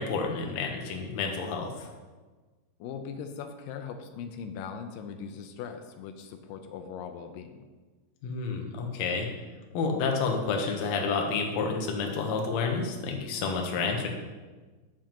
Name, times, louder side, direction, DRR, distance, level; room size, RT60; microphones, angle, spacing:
voice 1, 0.0-1.9 8.2-9.3 9.7-14.1, left 4 dB, 70° left, 2 dB, 1.9 m, -29 dB
voice 2, 2.8-7.7, left 6 dB, 90° left, 7 dB, 2.3 m, -40 dB
8.9 x 7.3 x 2.9 m, 1.3 s
omnidirectional pair, 3.8 m